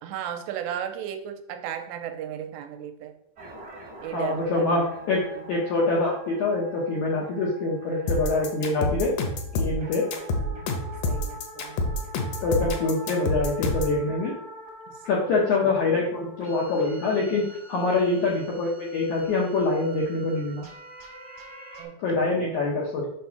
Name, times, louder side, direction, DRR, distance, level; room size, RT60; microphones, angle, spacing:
voice 1, 0.0-3.1 4.0-5.5 7.2-7.6 7.9-8.8 9.7-10.8 11.0-11.8 14.9-15.5 17.8-18.1 21.8-22.8, right 9 dB, 85° right, 6 dB, 2.7 m, -37 dB
sound 1, 3.4-21.8, right 2 dB, 65° right, 0.9 m, -45 dB
voice 2, 4.1-5.2 5.5-9.1 9.5-10.0 12.4-14.3 15.0-20.7 22.0-23.1, left 3 dB, 90° left, -3 dB, 1.6 m, -25 dB
sound 2, 8.1-14.0, left 2 dB, 75° left, 2.0 m, -27 dB
6.9 x 3.5 x 5.8 m, 0.75 s
omnidirectional pair, 5.0 m